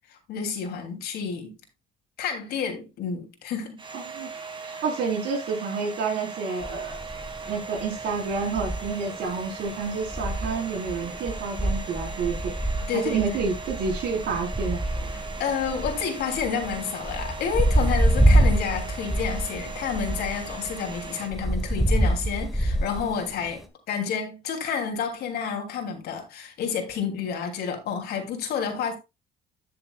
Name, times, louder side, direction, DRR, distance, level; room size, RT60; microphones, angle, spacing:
voice 1, 0.1-1.5 2.2-3.8 12.9-13.3 15.4-29.0, left 6 dB, 70° left, 2.9 m, -30 dB
Domestic sounds home sounds, 3.8-21.3, right 4 dB, 30° right, 1.9 m, -39 dB
voice 2, 3.9-4.3 4.6-7.0 7.5-12.5 12.9-14.8, right 5 dB, 70° right, 4.3 m, -29 dB
sound 1, 6.6-23.7, right 1 dB, ahead, 1.6 m, -27 dB
12.5 x 6.8 x 2.4 m
cardioid pair, 110°, 17 cm